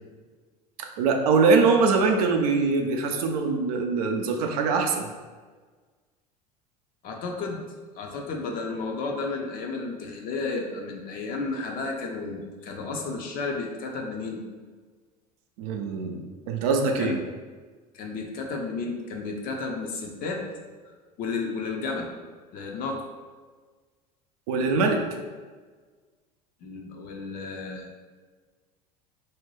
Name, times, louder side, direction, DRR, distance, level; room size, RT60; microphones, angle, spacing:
voice 1, 0.8-5.1 15.6-17.2 24.5-25.0, right 4 dB, 65° right, 4 dB, 0.4 m, -23 dB
voice 2, 7.0-7.6 7.9-14.4 17.0-17.2 17.9-20.4 21.2-22.1 22.5-23.1 26.6-27.9, left 3 dB, 45° left, 1 dB, 0.5 m, -32 dB
2.7 x 2.1 x 3.1 m, 1.4 s
hypercardioid pair, 75°, 21 cm